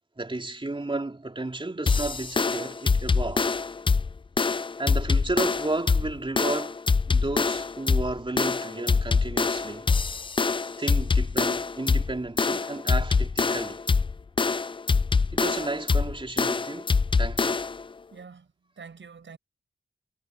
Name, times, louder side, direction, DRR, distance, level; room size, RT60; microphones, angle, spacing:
voice 1, 0.2-3.5 4.8-6.8 7.1-9.9 10.8-13.8 15.3-16.9 17.2-17.6, right 2 dB, 25° right, 3.3 m, -32 dB
sound 1, 1.9-17.8, left 4 dB, 25° left, 0.4 m, -24 dB
voice 2, 18.1-19.4, right 5 dB, 70° right, 7.3 m, -46 dB
cardioid pair, 55°, 20 cm